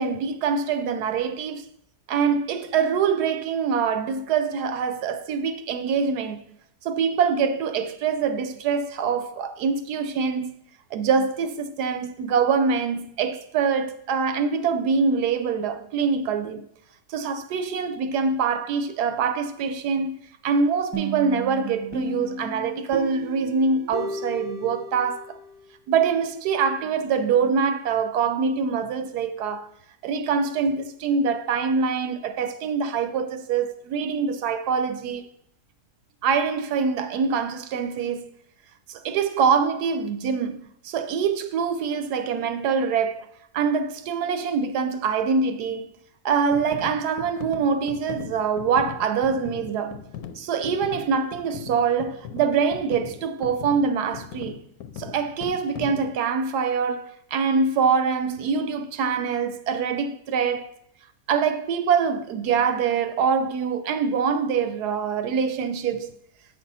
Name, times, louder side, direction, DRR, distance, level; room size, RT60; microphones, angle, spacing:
voice 1, 0.0-1.6 2.1-6.4 6.8-10.6 10.9-16.6 17.1-20.2 20.4-25.4 25.9-29.7 30.0-35.3 36.2-38.3 38.9-43.3 43.5-45.8 46.2-50.0 50.4-54.6 55.0-60.7 61.3-66.1, right 6 dB, 75° right, 1.2 m, -24 dB
sound 1, 20.9-25.6, right 2 dB, 20° right, 0.8 m, -34 dB
sound 2, 46.5-56.2, left 8 dB, 70° left, 1.0 m, -40 dB
8.1 x 5.4 x 4.0 m
omnidirectional pair, 1.8 m